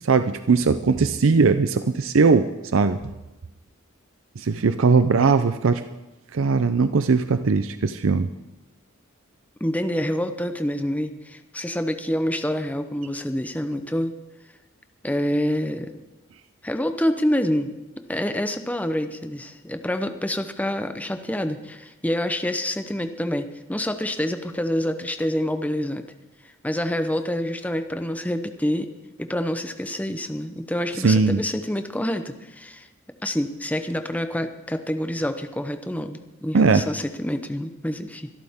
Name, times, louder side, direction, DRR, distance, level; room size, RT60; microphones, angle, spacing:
voice 1, 0.0-3.0 4.4-5.8 6.3-8.3 30.9-31.4 36.5-36.9, right 4 dB, 70° right, 10 dB, 0.6 m, -19 dB
voice 2, 9.6-14.1 15.0-15.9 16.6-17.7 18.1-26.0 26.6-28.9 29.2-32.9 33.2-38.3, equal, 5° left, 8 dB, 0.8 m, -27 dB
23.0 x 13.0 x 3.6 m, 1.0 s
head